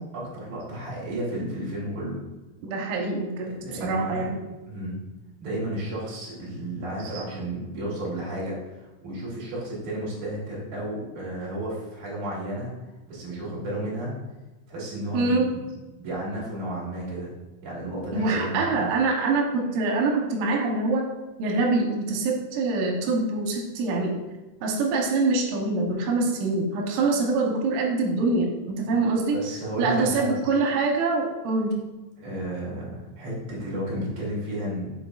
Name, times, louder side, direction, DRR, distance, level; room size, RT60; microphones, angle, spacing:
voice 1, 0.0-2.2 3.6-4.2 4.7-5.0 5.4-12.7 13.1-14.1 14.7-15.6 16.0-17.3 17.6-18.9 29.3-30.4 32.2-34.9, right 1 dB, 45° right, -6 dB, 3.2 m, -32 dB
voice 2, 2.6-3.5 3.8-4.4 7.1-7.2 15.1-15.5 18.1-21.1 21.4-24.1 24.6-29.4 29.8-31.7, right 3 dB, 90° right, 1 dB, 3.5 m, -24 dB
13.5 x 4.5 x 2.4 m, 1.1 s
omnidirectional pair, 5.6 m